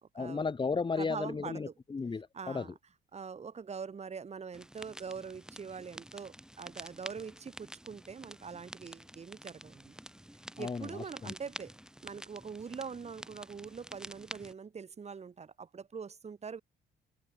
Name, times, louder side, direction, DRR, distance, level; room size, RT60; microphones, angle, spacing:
voice 1, 0.1-2.7 10.6-11.3, left 4 dB, 25° left, 1.1 m, -34 dB
voice 2, 1.0-1.7 2.3-2.7 3.1-10.0 10.6-11.7 12.0-16.6, right 6 dB, 35° right, 1.4 m, -43 dB
sound 1, 4.5-14.5, equal, 5° right, 2.7 m, -49 dB
cardioid pair, 90°, 20 cm